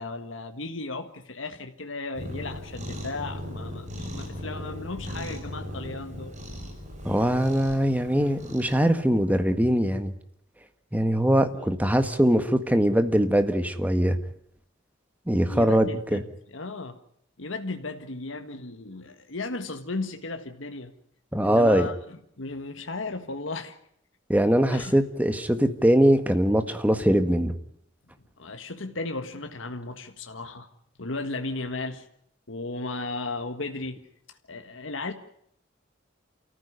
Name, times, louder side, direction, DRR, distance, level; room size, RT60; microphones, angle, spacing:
voice 1, 0.0-6.3 11.5-11.7 15.5-17.0 17.4-20.9 21.4-23.7 24.7-24.9 28.4-30.7 31.0-32.1 32.5-34.1 34.5-35.1, left 3 dB, 80° left, 6 dB, 1.6 m, -35 dB
Cat, 2.1-8.7, left 1 dB, 40° right, 6.5 m, -38 dB
voice 2, 7.0-10.1 10.9-14.2 15.3-16.2 21.3-21.9 24.3-27.5, equal, 10° right, 9 dB, 1.7 m, -22 dB
28.5 x 15.0 x 9.6 m, 0.71 s
head